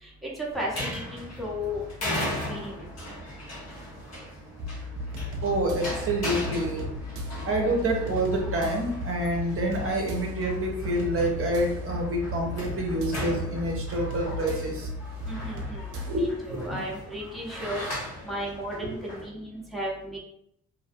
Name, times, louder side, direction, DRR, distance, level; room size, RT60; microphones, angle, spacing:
voice 1, 0.0-1.8 2.5-2.8 15.3-17.8 18.2-20.2, equal, ahead, -4 dB, 0.7 m, -35 dB
sound 1, 0.5-19.3, equal, 60° left, 0.9 m, -37 dB
sound 2, 4.6-16.3, left 1 dB, 90° right, 0.5 m, -36 dB
voice 2, 5.4-6.9 7.5-14.9 16.1-16.7 18.8-19.0, right 1 dB, 45° right, 0 dB, 0.6 m, -27 dB
2.5 x 2.0 x 2.6 m, 0.75 s
cardioid pair, 90°, 30 cm